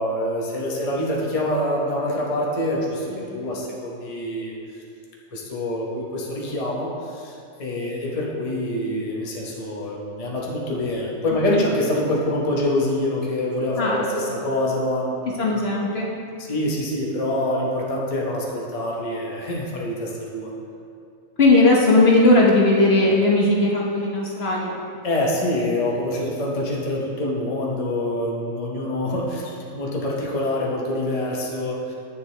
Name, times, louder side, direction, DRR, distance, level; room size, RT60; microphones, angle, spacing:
voice 1, 0.0-4.5 5.3-15.3 16.4-20.5 25.0-31.9, left 1 dB, 30° left, -3 dB, 1.0 m, -25 dB
voice 2, 3.1-3.5 11.5-11.6 13.8-14.0 15.4-16.1 21.4-24.8, left 2 dB, 50° left, -3 dB, 1.2 m, -18 dB
9.0 x 7.0 x 3.3 m, 2.4 s
omnidirectional pair, 1.4 m